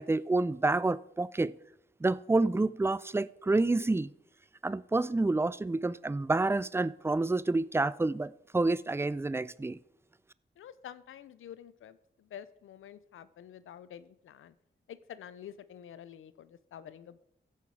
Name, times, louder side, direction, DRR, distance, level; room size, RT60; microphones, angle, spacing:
voice 1, 0.0-1.5 2.0-4.1 4.6-9.8, right 2 dB, 10° right, 0.4 m, -28 dB
voice 2, 10.6-14.5 14.9-17.2, left 9 dB, 90° left, 0.5 m, -48 dB
15.5 x 5.8 x 4.6 m
cardioid pair, 45°, 20 cm